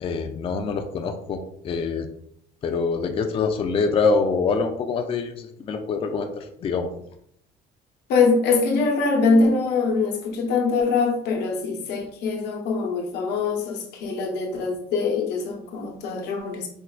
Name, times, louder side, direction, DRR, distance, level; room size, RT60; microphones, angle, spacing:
voice 1, 0.0-2.1 2.6-6.9, left 4 dB, 35° left, 5 dB, 0.3 m, -25 dB
voice 2, 8.1-16.7, left 4 dB, 80° left, 1 dB, 0.7 m, -23 dB
4.3 x 2.2 x 2.3 m, 0.69 s
cardioid pair, 110°, 17 cm